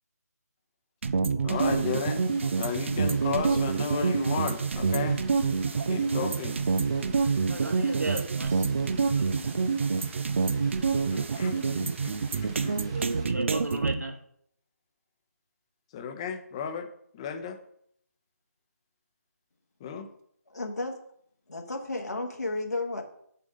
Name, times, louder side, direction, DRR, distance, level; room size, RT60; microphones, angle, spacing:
sound 1, 1.0-13.9, right 4 dB, 45° right, 0.6 m, -27 dB
voice 1, 1.4-2.3 2.6-5.2 5.9-6.6 11.1-12.1 12.6-12.9 15.9-16.9 17.1-17.6 19.8-20.1, left 6 dB, 20° left, 6 dB, 0.9 m, -33 dB
Rain, 1.5-13.2, right 3 dB, 20° right, 1.2 m, -50 dB
voice 2, 7.4-8.5 9.1-9.3 12.9-14.2, right 2 dB, 75° right, 3 dB, 1.9 m, -34 dB
voice 3, 20.5-21.0 21.5-23.0, left 2 dB, 75° left, 1 dB, 1.5 m, -32 dB
6.8 x 4.8 x 5.3 m, 0.68 s
figure-of-eight pair, 150°, 9 cm